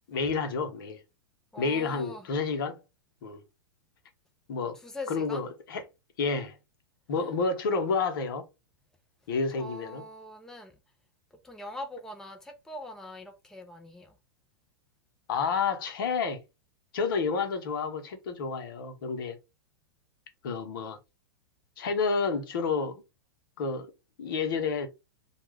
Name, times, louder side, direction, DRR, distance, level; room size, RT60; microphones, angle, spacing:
voice 1, 0.1-1.0 1.6-2.8 3.2-3.4 4.5-4.8 5.1-5.8 6.2-6.5 7.1-8.4 9.3-10.0 15.3-16.4 16.9-19.4 20.4-21.0 21.8-23.0 23.6-23.9 24.2-24.9, left 4 dB, 65° left, 0.8 m, -29 dB
voice 2, 1.5-2.3 4.7-5.4 7.2-7.3 9.6-10.8 11.4-14.1, left 1 dB, 5° left, 0.5 m, -42 dB
2.3 x 2.2 x 3.3 m
hypercardioid pair, 110°, 13 cm